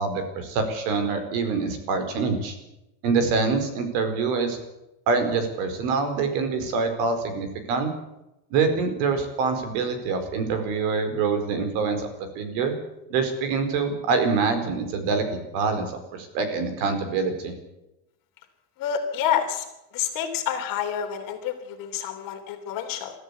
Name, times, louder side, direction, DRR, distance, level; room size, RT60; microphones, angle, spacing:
voice 1, 0.0-2.5 3.0-4.6 5.1-7.9 8.5-12.1 12.3-12.7 13.1-17.6, right 4 dB, 65° right, 8 dB, 4.7 m, -25 dB
voice 2, 18.8-19.7 19.9-23.1, left 9 dB, 40° left, 5 dB, 3.3 m, -28 dB
23.0 x 14.0 x 8.3 m, 0.93 s
cardioid pair, 180°, 50 cm